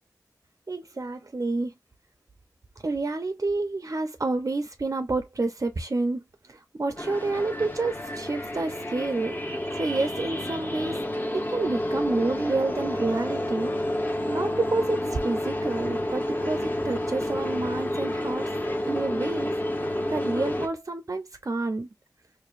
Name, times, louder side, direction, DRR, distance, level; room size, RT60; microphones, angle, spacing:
voice 1, 0.7-1.7 2.8-9.4 9.7-11.0 11.3-13.7 14.3-18.5 18.9-21.9, right 3 dB, 45° right, 0.5 m, -29 dB
sound 1, 7.0-20.7, left 1 dB, 25° left, 1.0 m, -30 dB
4.4 x 2.6 x 2.4 m
cardioid pair, 40°, 7 cm